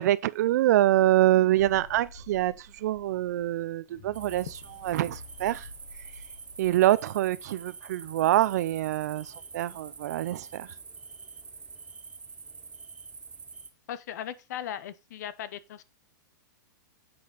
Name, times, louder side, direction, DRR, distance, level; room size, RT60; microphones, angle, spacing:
voice 1, 0.0-4.5 4.8-5.7 6.6-10.7, right 14 dB, 55° right, 0.5 m, -25 dB
sound 1, 1.6-7.7, left 3 dB, 40° left, 1.7 m, -50 dB
sound 2, 4.1-13.7, right 5 dB, 10° right, 0.6 m, -46 dB
voice 2, 13.9-15.8, left 10 dB, 60° left, 0.9 m, -38 dB
7.9 x 6.0 x 3.9 m
hypercardioid pair, 155°, 10 cm